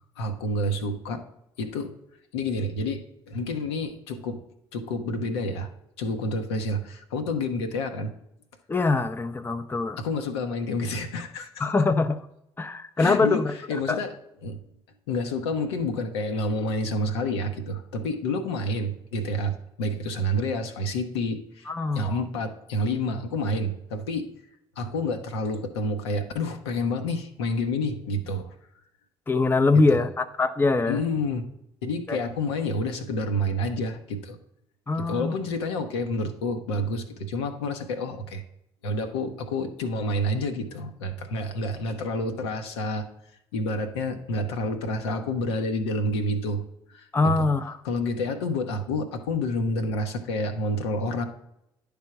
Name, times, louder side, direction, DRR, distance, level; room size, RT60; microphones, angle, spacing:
voice 1, 0.2-1.2 1.6-1.9 2.3-4.4 4.7-5.7 6.0-8.1 10.0-11.7 13.0-13.4 13.7-14.1 14.4-14.6 15.1-21.7 21.9-24.3 24.8-28.5 29.9-30.0 30.9-31.4 31.8-34.4 35.0-38.4 38.8-43.1 43.5-46.6 46.9-47.5 47.8-51.2, left 1 dB, 75° left, 6 dB, 0.8 m, -29 dB
voice 2, 8.7-10.0 11.6-12.3 12.6-14.0 21.7-22.2 29.3-31.0 32.1-32.3 34.9-35.3 47.1-47.8, left 3 dB, 15° left, 10 dB, 0.6 m, -23 dB
10.5 x 3.5 x 5.8 m, 0.80 s
figure-of-eight pair, 50°, 14 cm